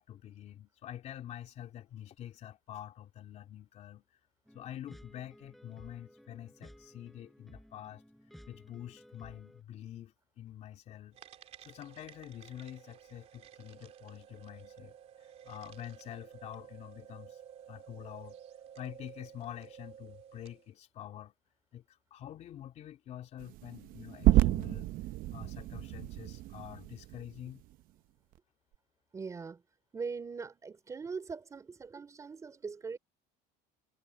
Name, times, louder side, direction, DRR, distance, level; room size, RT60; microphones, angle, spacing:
voice 1, 0.0-4.2 4.5-8.0 8.5-11.2 11.6-15.0 15.2-17.4 17.7-18.4 18.8-21.3 21.7-24.9 25.3-27.6, left 11 dB, 40° left, 3.1 m, -47 dB
sound 1, 4.5-9.6, equal, ahead, 7.9 m, -56 dB
sound 2, 11.1-20.7, right 9 dB, 40° right, 2.8 m, -53 dB
sound 3, 23.4-27.7, right 16 dB, 55° right, 0.7 m, -30 dB
voice 2, 29.1-29.6 29.9-33.0, right 5 dB, 20° right, 3.3 m, -41 dB
cardioid pair, 170°, 17 cm